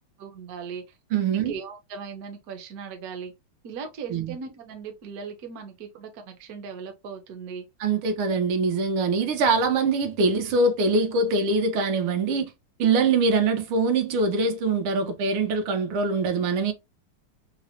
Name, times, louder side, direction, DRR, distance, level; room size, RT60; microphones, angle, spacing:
voice 1, 0.2-0.9 1.3-3.3 3.6-7.7, right 6 dB, 60° right, 0.9 m, -38 dB
voice 2, 1.1-1.5 4.1-4.3 7.8-12.5 12.8-16.7, right 3 dB, 80° right, 1.6 m, -23 dB
4.3 x 2.0 x 2.7 m
omnidirectional pair, 2.4 m